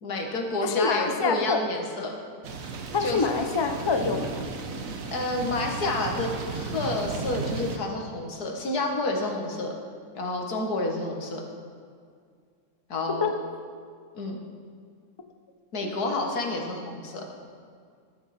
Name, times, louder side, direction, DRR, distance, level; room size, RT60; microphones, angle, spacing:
voice 1, 0.0-2.2 3.0-3.2 4.7-4.8 5.1-9.7 10.1-11.4 12.9-13.3 14.1-14.4 15.7-17.5, left 2 dB, 80° left, 1 dB, 2.1 m, -29 dB
voice 2, 0.6-1.6 2.9-4.4 13.2-13.4 15.8-15.9, left 5 dB, 40° left, 6 dB, 0.3 m, -26 dB
sound 1, 2.4-7.8, right 4 dB, 60° right, 1.3 m, -34 dB
13.0 x 12.0 x 4.3 m, 2.1 s
omnidirectional pair, 1.6 m